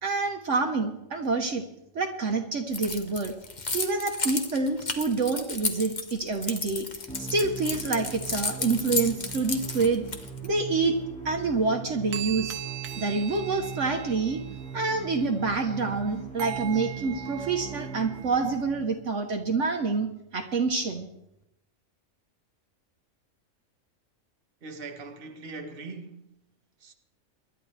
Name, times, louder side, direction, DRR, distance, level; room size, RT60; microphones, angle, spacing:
voice 1, 0.0-1.7 1.9-3.3 3.7-6.9 7.2-10.1 10.4-11.0 11.2-12.6 13.0-14.4 14.7-21.1, right 4 dB, 65° right, 1.4 m, -27 dB
Keys jangling, 2.7-10.5, left 3 dB, 35° left, 1.2 m, -32 dB
sound 1, 7.1-19.0, right 7 dB, 5° left, 1.9 m, -40 dB
sound 2, 11.7-11.8 12.1-15.9 16.4-18.7, right 11 dB, 85° right, 1.4 m, -40 dB
voice 2, 24.6-26.2 26.8-26.9, right 3 dB, 45° right, 1.4 m, -40 dB
24.5 x 11.5 x 3.3 m
omnidirectional pair, 1.4 m